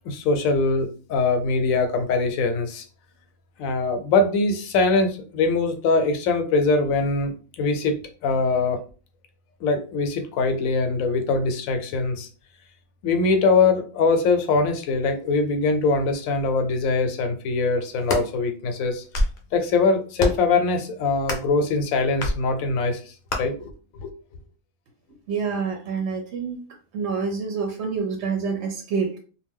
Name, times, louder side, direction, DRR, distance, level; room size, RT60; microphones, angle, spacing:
voice 1, 0.1-2.8 3.6-8.0 8.2-8.8 9.6-12.3 13.0-19.0 19.5-23.0 23.4-23.7 24.0-24.1, left 3 dB, 85° left, 7 dB, 1.0 m, -22 dB
sound 1, 17.8-18.3 18.9-19.4 20.2-20.5 21.2-21.5 22.2-22.4 23.3-23.4, left 1 dB, 50° left, 0.6 m, -25 dB
voice 2, 25.3-26.6 26.9-29.2, right 5 dB, 65° right, 2 dB, 0.8 m, -27 dB
2.5 x 2.1 x 3.5 m, 0.38 s
omnidirectional pair, 1.4 m